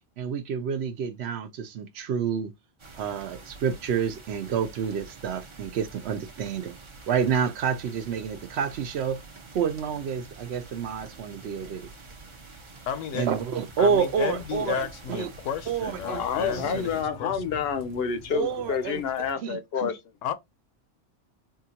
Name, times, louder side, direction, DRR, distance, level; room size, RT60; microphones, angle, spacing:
voice 1, 0.2-2.5 3.0-6.7 7.1-9.2 9.5-11.9 13.1-15.3 15.7-16.9 18.3-19.0 19.4-19.9, right 7 dB, 65° right, 0.8 m, -29 dB
sound 1, 2.8-17.0, right 3 dB, 35° right, 0.6 m, -47 dB
voice 2, 12.9-13.3 13.8-17.6 20.2-20.3, left 9 dB, 90° left, 1.0 m, -33 dB
sound 2, 13.5-19.3, left 1 dB, 85° right, 1.2 m, -48 dB
voice 3, 16.0-20.0, left 7 dB, 65° left, 0.7 m, -29 dB
3.6 x 2.3 x 2.7 m
omnidirectional pair, 1.2 m